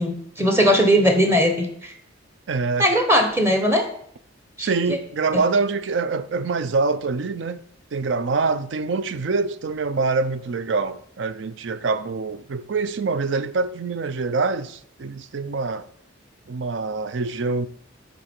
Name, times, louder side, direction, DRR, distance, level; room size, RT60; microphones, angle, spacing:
voice 1, 0.0-1.9 2.8-3.8 4.6-5.0, equal, 10° right, 0.9 m, -19 dB
voice 2, 2.5-2.9 4.6-7.6 7.9-15.9 16.5-17.7, right 4 dB, 65° right, 0.4 m, -25 dB
9.8 x 3.9 x 4.4 m
head